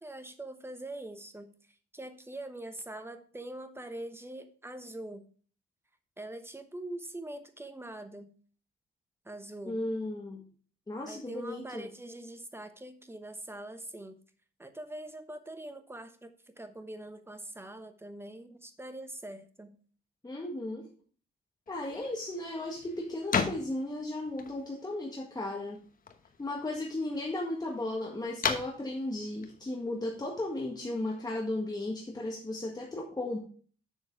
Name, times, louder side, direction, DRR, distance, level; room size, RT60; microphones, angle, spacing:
voice 1, 0.0-5.3 6.2-8.3 9.2-9.8 11.1-14.2 14.6-16.3 16.6-19.8, right 1 dB, 10° right, 9 dB, 1.0 m, -43 dB
voice 2, 9.7-10.4 10.9-11.9 20.2-20.9 21.7-25.8 26.4-33.4, left 1 dB, 20° left, -1 dB, 1.6 m, -35 dB
sound 1, 21.7-30.8, left 6 dB, 45° left, 1.1 m, -39 dB
7.1 x 6.4 x 4.7 m, 0.42 s
cardioid pair, 90°, 20 cm